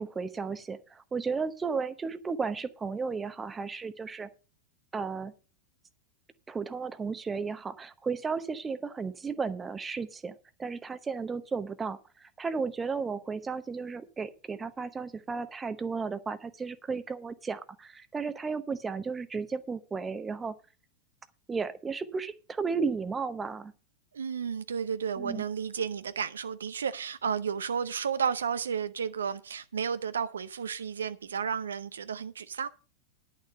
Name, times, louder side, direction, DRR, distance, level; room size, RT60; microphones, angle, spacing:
voice 1, 0.0-4.3 4.9-5.3 6.5-20.6 21.5-23.7 25.2-25.4, right 5 dB, 15° right, 0.9 m, -34 dB
voice 2, 24.1-32.7, right 7 dB, 70° right, 0.6 m, -32 dB
10.5 x 6.5 x 6.5 m
figure-of-eight pair, 90°, 0 cm